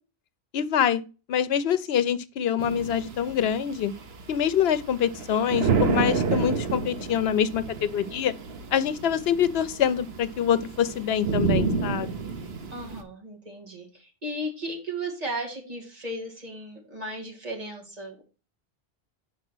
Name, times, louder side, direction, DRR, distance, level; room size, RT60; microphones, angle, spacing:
voice 1, 0.5-1.0 1.3-3.9 4.3-8.3 8.7-12.1, left 9 dB, 80° left, 0.9 m, -25 dB
sound 1, 2.6-13.0, right 5 dB, 80° right, 1.1 m, -30 dB
voice 2, 12.7-18.2, right 1 dB, 40° right, 2.2 m, -35 dB
5.0 x 4.9 x 6.1 m
omnidirectional pair, 1.0 m